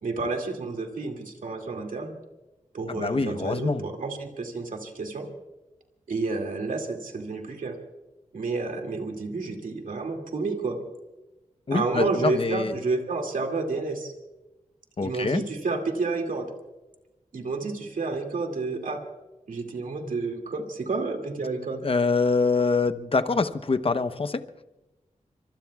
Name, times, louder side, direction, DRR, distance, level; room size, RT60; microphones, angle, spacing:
voice 1, 0.0-2.2 2.7-5.3 6.1-7.8 8.3-10.8 11.7-14.1 15.0-16.5 17.3-19.0 19.5-21.8, right 3 dB, 90° right, 3 dB, 2.4 m, -30 dB
voice 2, 2.9-3.8 11.7-12.7 15.0-15.4 21.8-24.4, left 4 dB, 45° left, 10 dB, 0.9 m, -25 dB
25.0 x 24.5 x 2.4 m, 1.1 s
wide cardioid pair, 80°, 13 cm